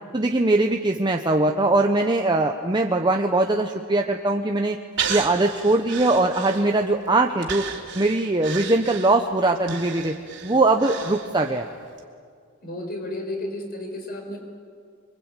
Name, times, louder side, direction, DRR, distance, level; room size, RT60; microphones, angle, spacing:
voice 1, 0.1-4.8 5.1-7.7 7.9-10.2 10.4-11.7, right 2 dB, 20° right, 3 dB, 1.0 m, -21 dB
Breathing, 5.0-7.0 7.4-11.6 12.0-12.1, right 6 dB, 60° right, 3.3 m, -33 dB
voice 2, 12.6-14.4, left 1 dB, 45° left, 2 dB, 5.9 m, -32 dB
27.5 x 23.5 x 9.1 m, 2.1 s
head